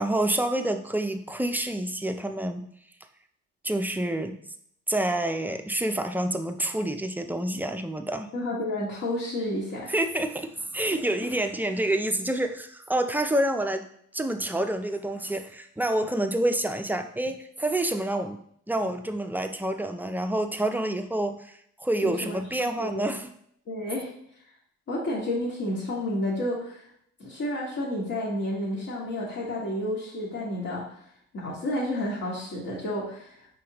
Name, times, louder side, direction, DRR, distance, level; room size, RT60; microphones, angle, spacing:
voice 1, 0.0-2.7 3.6-4.4 4.9-8.3 9.9-13.8 14.1-18.4 18.7-23.3, right 1 dB, 5° right, 6 dB, 0.3 m, -28 dB
voice 2, 8.3-9.9 22.0-22.4 22.6-23.2 23.7-24.1 24.9-26.8 27.2-30.9 31.3-33.4, left 1 dB, 55° left, -8 dB, 1.5 m, -30 dB
4.9 x 3.5 x 2.9 m, 0.68 s
cardioid pair, 90°, 30 cm